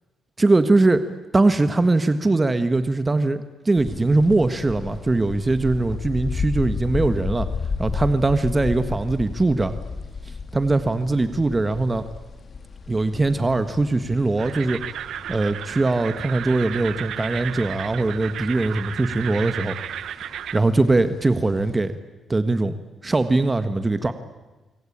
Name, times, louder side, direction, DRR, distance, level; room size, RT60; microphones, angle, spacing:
voice 1, 0.4-1.0 1.3-7.5 7.8-9.7 10.3-12.1 12.9-14.8 15.3-19.8 20.5-21.9 22.3-22.7 23.0-24.1, right 2 dB, 25° right, 10 dB, 1.6 m, -21 dB
sound 1, 3.8-21.7, left 5 dB, 45° left, 2.3 m, -34 dB
sound 2, 14.4-20.6, right 10 dB, 80° right, 0.9 m, -33 dB
25.5 x 24.5 x 8.8 m, 1.2 s
cardioid pair, 85°, 0 cm